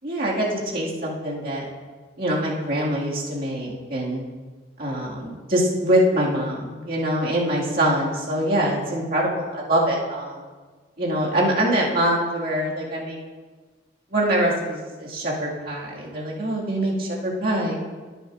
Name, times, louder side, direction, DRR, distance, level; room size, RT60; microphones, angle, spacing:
voice 1, 0.0-1.7 2.2-4.2 4.8-10.4 11.0-13.2 14.1-17.8, right 1 dB, 50° right, -4 dB, 2.0 m, -24 dB
16.0 x 7.2 x 2.5 m, 1.4 s
head